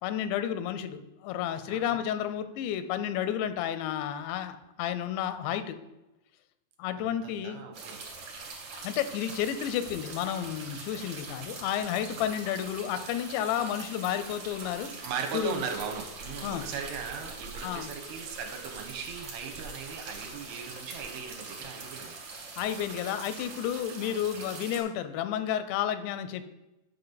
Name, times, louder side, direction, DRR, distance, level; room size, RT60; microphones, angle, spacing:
voice 1, 0.0-5.8 6.8-7.6 8.8-15.1 15.3-15.6 16.4-16.6 17.6-17.9 22.6-26.5, left 10 dB, 85° left, 11 dB, 2.8 m, -31 dB
voice 2, 1.7-2.0 7.0-8.0 15.0-22.2 24.0-24.2, right 6 dB, 75° right, 3 dB, 2.8 m, -38 dB
sound 1, 7.7-24.8, right 3 dB, 50° right, 1.9 m, -43 dB
9.1 x 5.4 x 3.9 m, 0.95 s
omnidirectional pair, 5.0 m